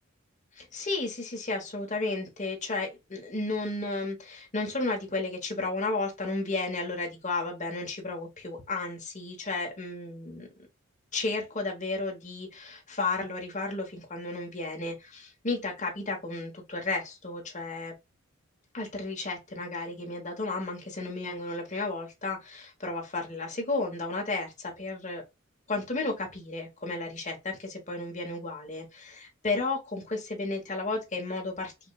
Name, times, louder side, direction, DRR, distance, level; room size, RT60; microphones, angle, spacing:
voice 1, 0.5-10.5 11.1-17.9 18.7-25.2 25.7-31.7, left 3 dB, 35° left, 1.1 m, -33 dB
5.0 x 2.4 x 2.3 m
head